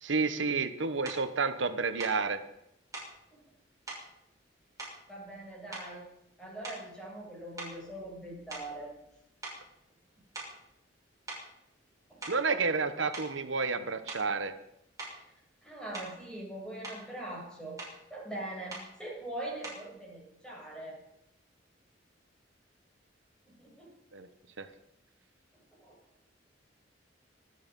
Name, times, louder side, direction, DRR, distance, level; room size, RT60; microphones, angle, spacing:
voice 1, 0.0-2.4 12.3-14.5 24.1-24.3 24.6-24.7, right 4 dB, 85° right, 10 dB, 1.1 m, -30 dB
sound 1, 1.0-1.3 2.0-2.2 2.9-3.2 3.9-4.1 4.8-5.4 5.7-6.1 6.6-7.0 7.6-9.1 9.4-9.6 10.3-10.6 11.3-11.5 12.0-12.5 13.1-13.3 14.1-14.3 15.0-15.2 15.9-16.2 16.6-17.1 17.8-18.0 18.7-18.9 19.6-19.9, right 2 dB, 20° right, 6.9 m, -43 dB
voice 2, 5.1-6.0 6.4-8.9 12.1-12.2 12.5-12.6 15.1-15.2 15.6-17.8 18.1-21.0 23.5-23.9 25.8-25.9, right 1 dB, 5° left, -4 dB, 7.8 m, -42 dB
26.0 x 9.7 x 5.4 m, 0.81 s
head